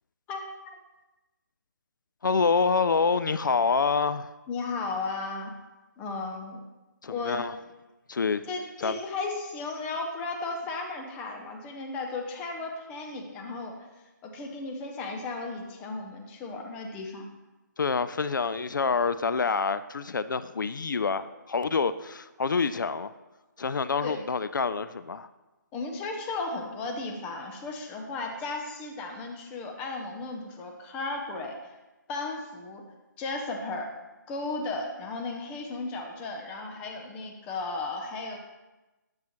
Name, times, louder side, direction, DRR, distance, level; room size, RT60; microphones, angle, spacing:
voice 1, 2.2-4.3 7.0-7.6 8.1-8.4 8.8-9.0 17.8-23.1 23.6-25.3, left 5 dB, 80° left, 14 dB, 0.4 m, -27 dB
voice 2, 4.5-5.5 6.0-6.6 7.1-7.4 8.4-13.8 14.2-17.3 24.0-24.2 25.7-31.7 32.1-32.8 33.2-33.9 34.3-38.4, left 3 dB, 10° left, 2 dB, 0.5 m, -35 dB
9.8 x 7.2 x 3.0 m, 1.1 s
figure-of-eight pair, 160°, 10 cm